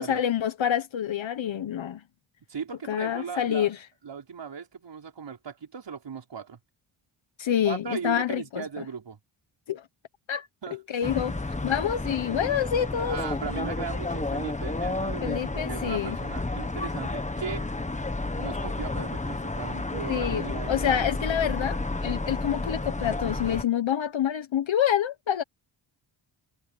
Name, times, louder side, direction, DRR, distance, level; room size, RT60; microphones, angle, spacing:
voice 1, 0.0-2.0 2.9-3.8 7.4-8.8 9.7-9.8 10.3-10.5 10.9-11.3 11.6-13.2 15.2-16.2 20.1-25.4, left 10 dB, 65° left, 1.3 m, -27 dB
voice 2, 2.5-3.7 4.0-6.6 7.6-9.2 10.6-11.1 13.0-17.7 18.3-21.1, right 6 dB, 60° right, 5.8 m, -37 dB
sound 1, 11.0-23.6, left 2 dB, 15° left, 1.5 m, -31 dB
wide cardioid pair, 105°, 48 cm